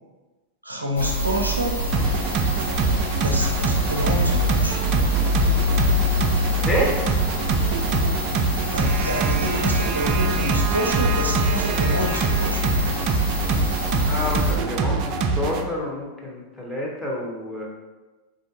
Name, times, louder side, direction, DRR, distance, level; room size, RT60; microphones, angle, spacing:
voice 1, 0.6-1.8 3.2-4.8 8.7-12.6, equal, 85° right, 1 dB, 0.6 m, -28 dB
sound 1, 1.0-14.6, left 1 dB, 75° left, 1.1 m, -26 dB
sound 2, 1.9-15.6, right 4 dB, 40° right, 0.4 m, -24 dB
voice 2, 13.9-15.0 15.4-17.7, equal, ahead, -4 dB, 1.0 m, -28 dB
4.2 x 2.6 x 3.8 m, 1.2 s
figure-of-eight pair, 90°, 0 cm